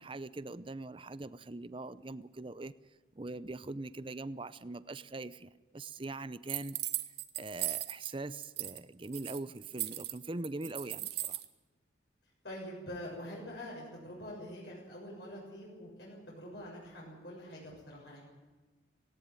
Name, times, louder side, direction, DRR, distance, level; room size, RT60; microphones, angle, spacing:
voice 1, 0.0-2.7 3.1-6.8 7.4-11.4, right 2 dB, 25° right, 16 dB, 0.6 m, -42 dB
sound 1, 6.5-8.1 8.4-8.8 9.0-11.5, right 15 dB, 60° right, 1.2 m, -37 dB
voice 2, 12.4-18.2, equal, 65° left, -4 dB, 6.9 m, -45 dB
18.5 x 17.5 x 9.0 m, 1.3 s
head